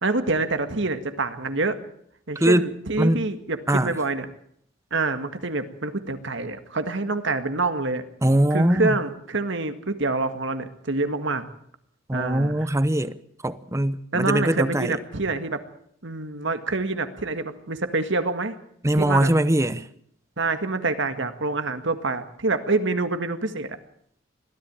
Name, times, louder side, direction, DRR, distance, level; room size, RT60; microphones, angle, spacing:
voice 1, 0.0-1.8 2.3-4.3 4.9-8.0 8.5-11.4 12.1-12.7 14.1-15.6 16.0-18.5 19.0-19.3 20.4-23.8, right 3 dB, 60° right, 1.9 m, -26 dB
voice 2, 8.2-8.9 12.1-13.1 13.4-15.0 18.8-19.8, right 1 dB, 15° right, 0.8 m, -21 dB
21.5 x 14.5 x 8.9 m
head